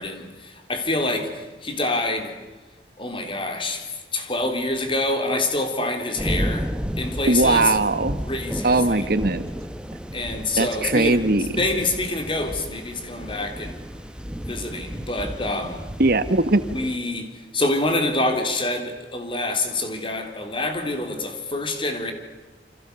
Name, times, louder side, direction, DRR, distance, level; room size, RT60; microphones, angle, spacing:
voice 1, 0.0-2.3 3.0-7.7 8.3-9.1 10.1-11.2 11.6-13.8 14.4-15.9 16.7-22.1, left 2 dB, 30° left, 3.6 m, -26 dB
sound 1, 6.2-17.0, equal, 5° right, 1.0 m, -32 dB
voice 2, 7.3-8.2 8.6-9.5 10.6-11.6 16.0-16.6, right 2 dB, 55° right, 1.3 m, -20 dB
29.0 x 26.5 x 6.9 m
head